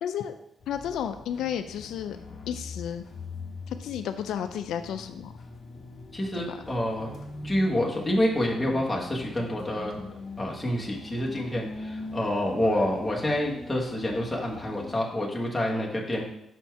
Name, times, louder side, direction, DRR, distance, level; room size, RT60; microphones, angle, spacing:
voice 1, 0.0-0.3 0.7-2.2 2.5-3.1 3.7-5.3 6.3-6.6, left 9 dB, 85° left, 9 dB, 0.4 m, -32 dB
sound 1, 0.6-14.9, left 3 dB, 45° left, 0.9 m, -43 dB
voice 2, 6.1-7.2 7.4-10.0 10.4-16.2, left 1 dB, 5° left, -3 dB, 1.3 m, -28 dB
5.8 x 4.3 x 4.6 m, 0.78 s
cardioid pair, 140°, 0 cm